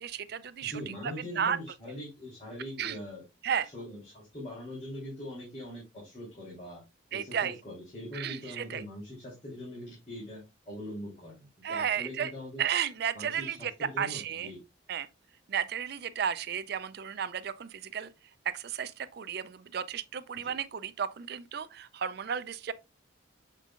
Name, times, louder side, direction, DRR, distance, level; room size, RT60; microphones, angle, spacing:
voice 1, 0.0-0.7 1.0-1.6 2.8-3.0 3.4-3.7 7.1-7.5 8.1-8.8 11.6-12.3 12.6-13.7 14.0-14.5 14.9-15.1 15.5-18.1 18.5-22.7, right 8 dB, 55° right, 0.4 m, -33 dB
voice 2, 0.6-3.2 3.6-6.8 7.1-12.6 13.1-14.6 20.4-20.5, left 1 dB, 35° left, 3.2 m, -42 dB
7.4 x 5.3 x 2.4 m
head